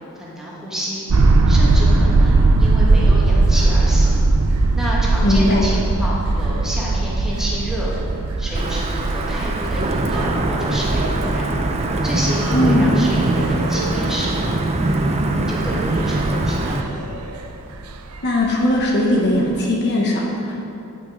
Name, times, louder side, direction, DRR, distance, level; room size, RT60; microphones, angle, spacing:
voice 1, 0.2-1.0 1.5-4.2 4.7-7.9 8.4-11.5 12.0-14.5 15.0-15.2 15.5-16.8, equal, ahead, -7 dB, 1.9 m, -29 dB
sound 1, 1.1-17.5 17.9-18.0 18.2-18.3 19.6-19.7, right 2 dB, 75° right, 0.6 m, -19 dB
voice 2, 5.2-5.7 12.5-12.9 18.2-20.6, left 1 dB, 50° left, -2 dB, 1.0 m, -19 dB
Wind / Thunder / Rain, 8.5-16.8, right 2 dB, 30° right, 0.5 m, -22 dB
9.7 x 6.1 x 5.1 m, 2.8 s
head